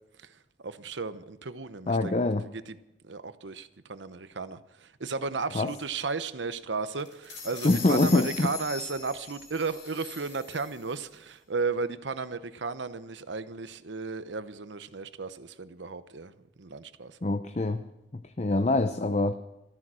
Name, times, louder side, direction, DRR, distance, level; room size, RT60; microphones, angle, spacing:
voice 1, 0.2-2.2 2.5-2.8 3.0-16.3 16.6-17.2, right 4 dB, 90° right, 13 dB, 0.9 m, -34 dB
voice 2, 1.9-2.4 5.5-5.7 7.6-8.5 17.2-17.8 18.1-19.3, left 2 dB, 40° left, 9 dB, 0.6 m, -25 dB
sound 1, 7.0-11.0, left 5 dB, 90° left, 6.3 m, -41 dB
14.0 x 14.0 x 6.2 m, 0.89 s
head